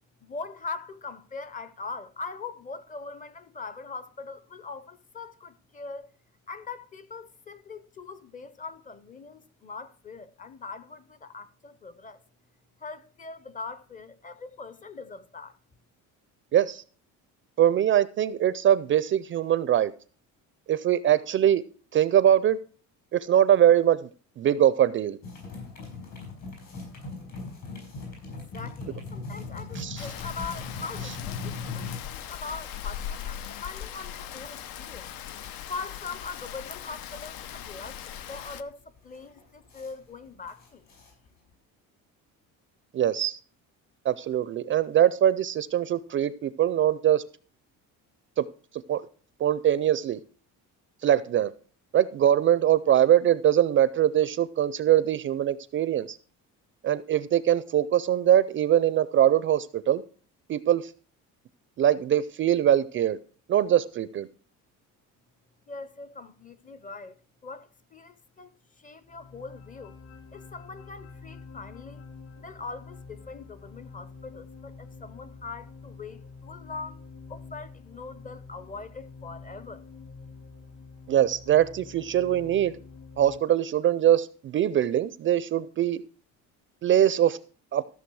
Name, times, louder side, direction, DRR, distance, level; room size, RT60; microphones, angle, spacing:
voice 1, 0.2-6.1 6.5-12.2 12.8-15.6 28.5-35.1 35.7-40.9 65.7-67.2 67.4-70.0 70.3-72.1 72.4-77.0 77.3-79.8, left 4 dB, 25° left, 0.6 m, -41 dB
voice 2, 16.5-16.8 17.6-19.9 20.7-21.6 21.9-22.6 23.1-24.1 24.4-25.2 29.8-30.1 42.9-43.4 44.1-47.2 48.4-48.5 48.9-49.0 49.4-50.2 51.0-51.5 51.9-56.2 56.8-60.0 60.5-60.9 61.8-63.2 63.5-64.3 81.1-82.7 83.2-86.0 86.8-87.4 87.7-87.8, right 11 dB, 35° right, 0.4 m, -22 dB
sound 1, 25.2-41.5, left 4 dB, 55° left, 5.9 m, -41 dB
Rain, 30.0-38.6, left 10 dB, 90° left, 0.9 m, -39 dB
sound 2, 69.0-83.4, left 4 dB, 40° left, 2.3 m, -47 dB
14.5 x 6.6 x 4.7 m
cardioid pair, 155°, 34 cm